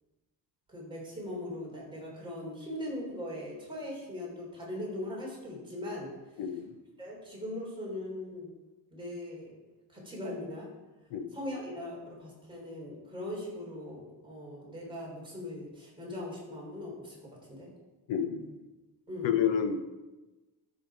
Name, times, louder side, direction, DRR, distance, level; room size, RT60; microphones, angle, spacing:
voice 1, 0.7-6.1 7.0-8.5 8.9-9.5 9.9-10.7 11.3-17.7 19.1-19.4, left 1 dB, 10° right, -4 dB, 3.6 m, -40 dB
voice 2, 6.4-6.7 11.1-11.4 18.1-18.5 19.2-19.8, left 8 dB, 90° left, 8 dB, 1.0 m, -29 dB
13.5 x 5.5 x 4.9 m, 1.1 s
cardioid pair, 160°, 43 cm